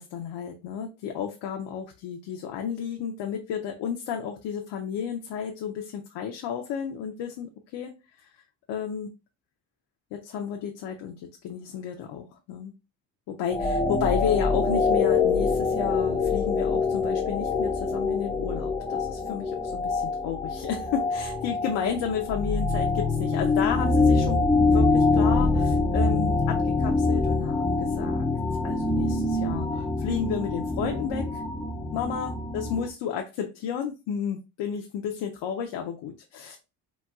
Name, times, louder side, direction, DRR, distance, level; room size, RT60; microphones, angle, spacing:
voice 1, 0.0-7.9 8.7-9.1 10.1-12.7 13.3-28.3 28.6-31.4 31.9-36.6, left 7 dB, 85° left, 3 dB, 0.6 m, -32 dB
sound 1, 13.5-32.9, left 3 dB, 10° left, 0.3 m, -25 dB
4.1 x 2.2 x 2.3 m, 0.28 s
cardioid pair, 115°, 41 cm